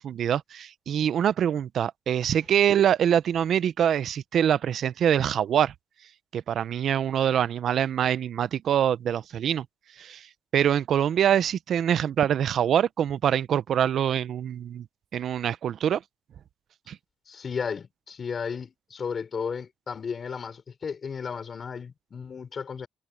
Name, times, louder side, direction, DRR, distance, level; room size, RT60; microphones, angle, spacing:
voice 1, 0.0-5.7 6.3-9.6 10.0-10.2 10.5-14.8 15.1-16.0 16.9-17.0, right 9 dB, 65° right, 0.6 m, -24 dB
voice 2, 17.3-22.9, left 6 dB, 45° left, 5.0 m, -34 dB
cardioid pair, 90°, 0 cm